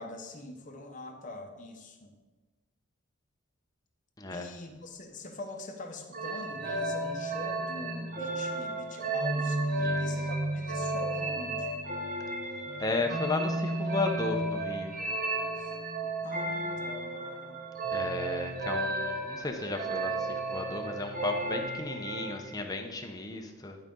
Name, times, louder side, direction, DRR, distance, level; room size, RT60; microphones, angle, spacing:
voice 1, 0.0-2.2 4.3-11.8 15.6-15.8 16.2-17.6, left 2 dB, 40° left, 3 dB, 1.0 m, -44 dB
sound 1, 6.1-22.5, right 2 dB, 45° right, 1.0 m, -33 dB
voice 2, 12.8-15.0 17.9-23.8, left 2 dB, 20° left, 3 dB, 0.8 m, -34 dB
11.0 x 5.2 x 3.8 m, 1.2 s
head